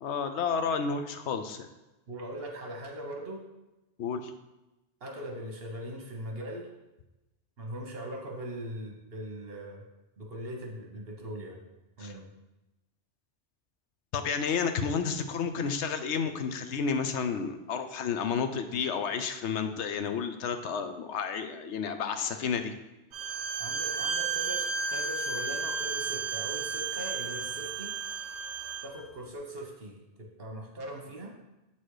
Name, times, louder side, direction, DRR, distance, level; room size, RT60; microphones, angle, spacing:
voice 1, 0.0-1.7 4.0-4.3 12.0-12.1 14.1-22.7, left 6 dB, 90° left, 8 dB, 1.0 m, -31 dB
voice 2, 2.1-3.4 5.0-6.7 7.6-9.8 10.2-11.6 12.0-12.2 23.6-27.9 28.8-31.3, right 1 dB, 60° right, 1 dB, 1.4 m, -40 dB
Bowed string instrument, 23.1-28.9, right 5 dB, 80° right, 0.9 m, -33 dB
7.6 x 4.2 x 4.9 m, 1.0 s
omnidirectional pair, 1.1 m